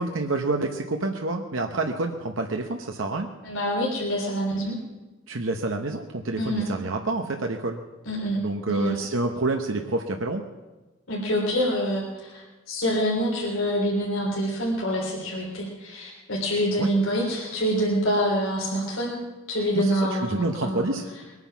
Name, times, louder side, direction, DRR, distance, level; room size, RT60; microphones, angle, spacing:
voice 1, 0.0-3.3 5.3-7.8 8.4-10.4 16.8-16.9 19.7-21.1, right 2 dB, 75° right, 3 dB, 1.0 m, -28 dB
voice 2, 3.4-4.8 6.4-6.7 8.1-8.4 8.7-9.0 11.1-19.2 19.5-21.0, equal, 85° left, -4 dB, 3.5 m, -26 dB
22.0 x 9.7 x 6.0 m, 1.2 s
head